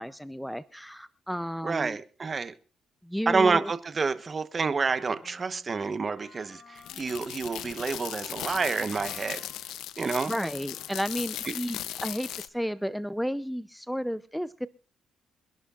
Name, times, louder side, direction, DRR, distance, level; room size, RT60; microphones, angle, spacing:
voice 1, 0.0-2.0 3.0-3.7 10.3-14.7, equal, ahead, 0.5 m, -32 dB
voice 2, 1.6-2.5 3.3-9.4 10.0-10.3 11.5-11.6, right 4 dB, 35° right, 1.0 m, -28 dB
Wind instrument woodwind instrument, 4.8-11.4, left 4 dB, 65° left, 3.2 m, -54 dB
sound 1, 6.8-12.5, left 12 dB, 85° left, 0.6 m, -38 dB
26.0 x 11.0 x 2.4 m
cardioid pair, 90°, 0 cm